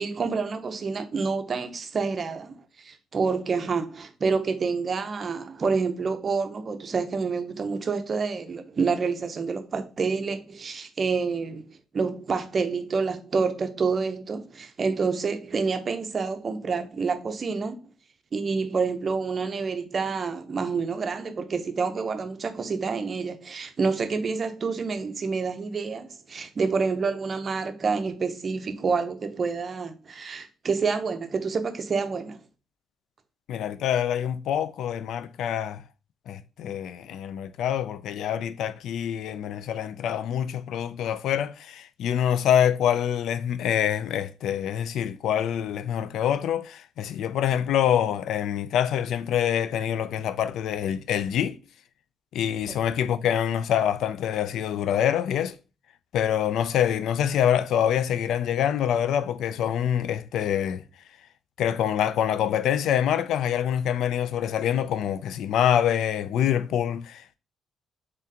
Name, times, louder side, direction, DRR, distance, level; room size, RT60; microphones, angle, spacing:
voice 1, 0.0-17.8 18.3-32.4, right 4 dB, 40° right, 0.6 m, -28 dB
voice 2, 33.5-35.8 36.3-51.6 52.3-55.6 56.1-60.8 61.6-67.4, left 9 dB, 80° left, 0.3 m, -25 dB
3.6 x 3.4 x 2.8 m
cardioid pair, 90°, 0 cm